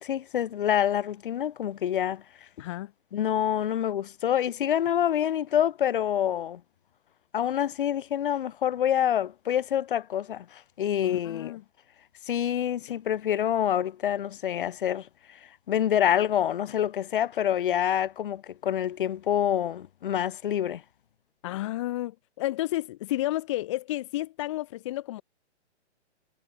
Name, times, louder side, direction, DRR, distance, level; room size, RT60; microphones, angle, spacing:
voice 1, 0.0-2.5 3.1-6.6 7.3-11.6 12.3-20.8, left 10 dB, 45° left, 1.6 m, -27 dB
voice 2, 2.6-2.9 11.0-11.6 21.4-25.2, left 16 dB, 25° left, 1.1 m, -31 dB
hypercardioid pair, 165°, 35 cm